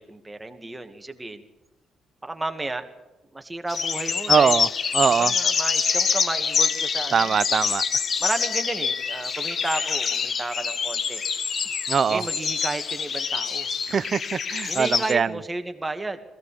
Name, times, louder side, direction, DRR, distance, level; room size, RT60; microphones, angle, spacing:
voice 1, 0.0-1.4 2.2-2.9 3.3-4.7 5.2-7.3 8.2-11.2 12.1-13.7 14.7-16.2, right 2 dB, 15° right, 6 dB, 2.2 m, -32 dB
sound 1, 3.7-15.1, left 6 dB, 50° left, 1.1 m, -26 dB
voice 2, 4.3-4.7 4.9-5.3 7.1-7.8 11.9-12.2 13.9-15.3, right 6 dB, 45° right, 17 dB, 0.7 m, -22 dB
21.5 x 16.5 x 8.6 m, 1.0 s
cardioid pair, 90°, 0 cm